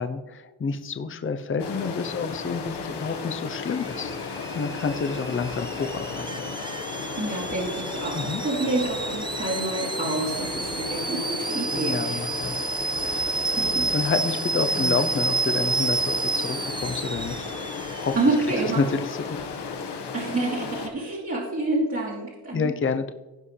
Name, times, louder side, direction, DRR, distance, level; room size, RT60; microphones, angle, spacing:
voice 1, 0.0-6.3 8.1-8.4 11.7-12.7 13.0-13.4 13.9-17.5 17.9-18.1 18.6-19.4 22.5-23.1, left 5 dB, 30° left, 8 dB, 0.7 m, -29 dB
Stream, 1.6-20.9, left 5 dB, 75° left, 1.5 m, -34 dB
Alarm / Boiling, 3.7-18.5, right 3 dB, 15° right, 0.3 m, -30 dB
voice 2, 7.2-12.2 13.6-14.1 14.7-15.0 18.1-18.8 20.1-22.7, right 2 dB, 35° right, -5 dB, 2.3 m, -28 dB
16.5 x 5.5 x 3.3 m, 1.2 s
cardioid pair, 95°, 41 cm